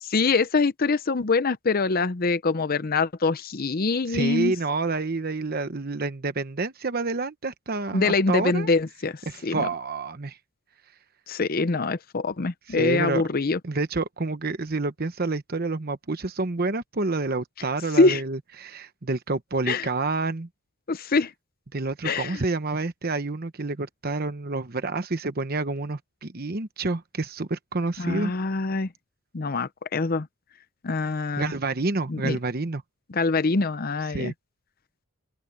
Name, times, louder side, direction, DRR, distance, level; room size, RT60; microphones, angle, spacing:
voice 1, 0.0-4.5 7.9-9.7 11.3-13.6 17.9-18.2 19.7-19.9 20.9-21.3 22.0-22.4 28.0-28.9 29.3-30.3 30.8-31.5 32.1-32.4 33.1-34.3, left 3 dB, 45° left, 0.7 m, -24 dB
voice 2, 4.1-8.7 9.3-10.4 12.7-13.2 13.6-20.5 21.7-28.3 31.4-32.8 34.1-34.3, right 3 dB, 45° right, 1.0 m, -28 dB
open air
head